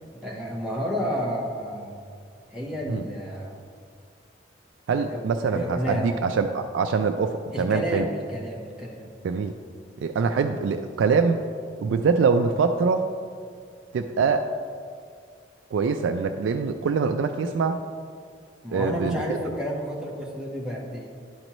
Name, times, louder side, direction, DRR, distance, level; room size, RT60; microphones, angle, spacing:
voice 1, 0.1-2.0 2.5-3.6 5.0-5.2 5.5-6.2 7.5-9.2 18.6-21.1, equal, 5° right, -3 dB, 1.0 m, -31 dB
voice 2, 4.9-8.1 9.2-9.5 10.0-11.5 11.8-13.0 13.9-14.5 15.7-17.8 18.7-19.4, right 5 dB, 90° right, 6 dB, 0.3 m, -24 dB
11.0 x 5.2 x 3.0 m, 2.1 s
head